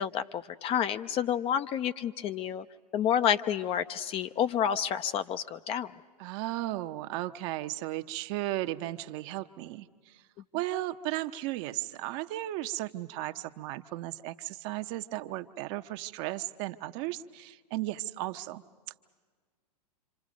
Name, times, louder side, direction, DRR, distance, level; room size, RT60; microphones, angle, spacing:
voice 1, 0.0-2.7 2.9-5.9, left 9 dB, 30° left, 11 dB, 0.7 m, -29 dB
voice 2, 6.2-10.2 10.5-18.6, right 16 dB, 45° right, 9 dB, 0.9 m, -35 dB
27.0 x 26.0 x 5.2 m, 1.5 s
hypercardioid pair, 110°, 20 cm